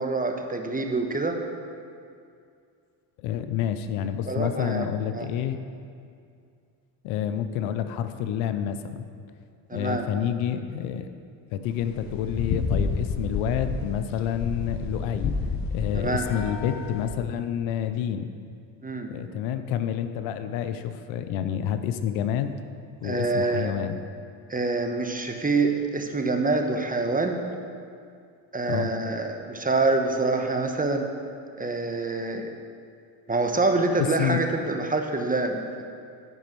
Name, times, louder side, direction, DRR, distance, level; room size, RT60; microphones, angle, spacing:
voice 1, 0.0-1.4 4.3-4.9 5.1-5.3 9.7-10.0 15.9-16.3 18.8-19.1 23.0-23.8 24.5-27.4 28.5-31.1 31.6-32.5 33.3-35.8, right 3 dB, 20° right, 4 dB, 1.1 m, -26 dB
voice 2, 3.2-5.6 7.0-9.1 9.7-11.1 11.5-15.3 15.7-18.3 19.1-22.5 23.0-24.0 28.7-28.9 34.0-34.4, left 9 dB, 90° left, 10 dB, 0.7 m, -28 dB
sound 1, 11.7-17.2, left 4 dB, 50° left, 1.1 m, -30 dB
11.0 x 5.3 x 6.8 m, 2.3 s
supercardioid pair, 75°, 46 cm